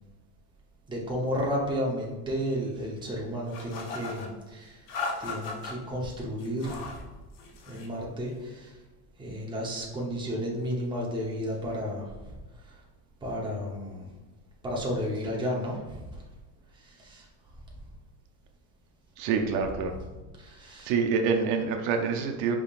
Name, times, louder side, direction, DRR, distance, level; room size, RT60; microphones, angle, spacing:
voice 1, 0.9-4.9 5.2-6.9 7.7-8.7 9.2-12.3 12.6-12.8 13.2-14.1 14.6-16.2 16.8-17.3 20.4-20.9, equal, 10° right, -3 dB, 0.8 m, -32 dB
sound 1, 3.5-4.3 4.9-5.7 6.4-7.0 7.3-7.9, left 4 dB, 70° left, 1.0 m, -37 dB
voice 2, 19.2-19.9 20.8-22.6, right 5 dB, 75° right, 4 dB, 0.7 m, -26 dB
4.9 x 3.7 x 2.4 m, 1.2 s
supercardioid pair, 135°, 48 cm